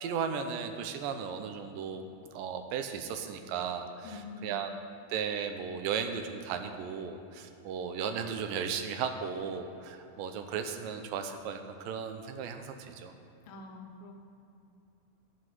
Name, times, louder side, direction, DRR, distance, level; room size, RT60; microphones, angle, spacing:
voice 1, 0.0-2.0 2.3-4.7 5.1-13.1, right 7 dB, 80° right, 6 dB, 2.0 m, -36 dB
voice 2, 4.0-4.6 13.4-14.2, left 3 dB, 75° left, 2 dB, 2.3 m, -45 dB
12.5 x 8.2 x 6.1 m, 2.7 s
omnidirectional pair, 4.8 m